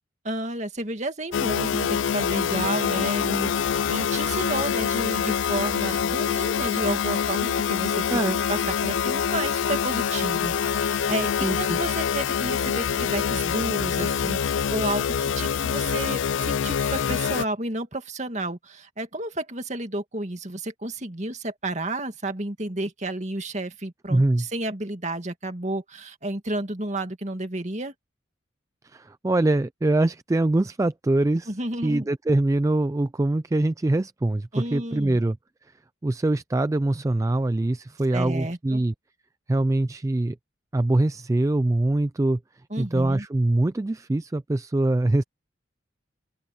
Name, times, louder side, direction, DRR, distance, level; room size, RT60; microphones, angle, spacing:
voice 1, 0.2-8.2 8.5-11.3 11.6-27.9 31.5-32.1 34.5-35.2 38.1-38.8 42.7-43.3, right 2 dB, 35° right, 2.2 m, -31 dB
sound 1, 1.3-17.4, left 7 dB, 75° left, 0.4 m, -25 dB
voice 2, 11.4-11.8 24.1-24.5 28.8-31.5 31.8-35.4 36.0-38.9 39.5-40.4 40.7-42.4 42.8-45.2, right 2 dB, 15° right, 0.3 m, -23 dB
open air
head